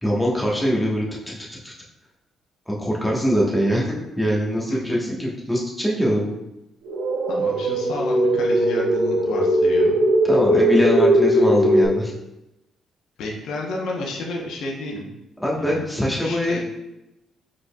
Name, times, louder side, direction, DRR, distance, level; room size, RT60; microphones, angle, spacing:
voice 1, 0.0-1.4 1.6-1.7 2.7-6.4 10.3-12.1 15.4-16.6, equal, ahead, -4 dB, 1.2 m, -22 dB
sound 1, 6.8-11.9, right 1 dB, 90° right, 0.7 m, -19 dB
voice 2, 7.3-10.0 13.2-15.1 15.5-15.9 16.2-16.6, left 2 dB, 80° left, -2 dB, 0.8 m, -31 dB
5.0 x 4.2 x 2.3 m, 0.92 s
cardioid pair, 90°, 0 cm